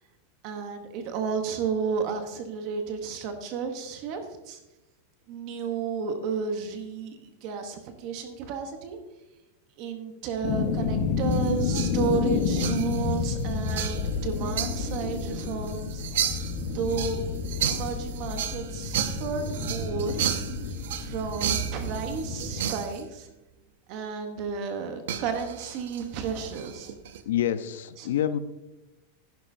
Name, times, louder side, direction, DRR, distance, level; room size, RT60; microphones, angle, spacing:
voice 1, 0.4-4.6 5.3-9.0 9.8-17.2 17.6-20.2 21.0-23.3 23.9-26.9 28.0-28.1, right 6 dB, 35° right, 6 dB, 1.0 m, -32 dB
sound 1, 10.4-22.6, left 5 dB, 35° left, 1.1 m, -30 dB
sound 2, 11.2-23.0 25.1-27.2, right 9 dB, 70° right, 0.7 m, -34 dB
voice 2, 27.2-28.4, left 10 dB, 85° left, 12 dB, 0.7 m, -27 dB
11.0 x 10.5 x 2.7 m, 1.0 s
supercardioid pair, 175°, 0 cm